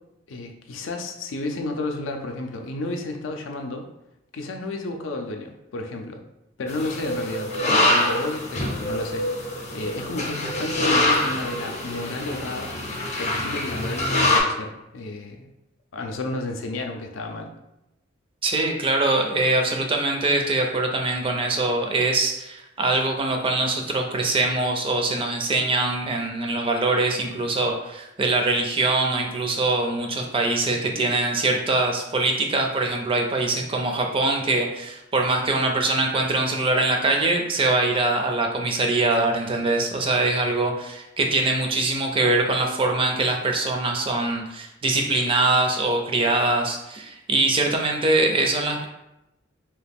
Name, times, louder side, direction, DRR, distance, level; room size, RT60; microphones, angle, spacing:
voice 1, 0.3-3.9 4.3-6.2 6.6-12.7 13.2-15.5 15.9-17.5, left 2 dB, 85° left, 3 dB, 0.5 m, -32 dB
sound 1, 6.7-14.4, left 1 dB, 35° left, 0.6 m, -25 dB
voice 2, 18.4-48.8, right 2 dB, 30° right, 2 dB, 0.4 m, -23 dB
2.9 x 2.4 x 3.4 m, 0.89 s
head